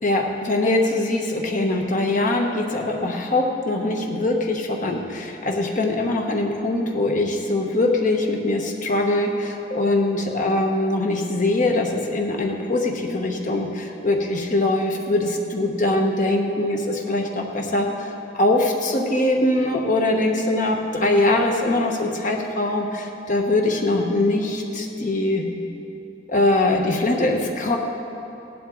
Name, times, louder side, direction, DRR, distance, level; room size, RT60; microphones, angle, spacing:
voice 1, 0.0-25.5 26.3-27.8, left 2 dB, 45° left, 2 dB, 1.1 m, -22 dB
16.5 x 11.0 x 3.9 m, 2.9 s
head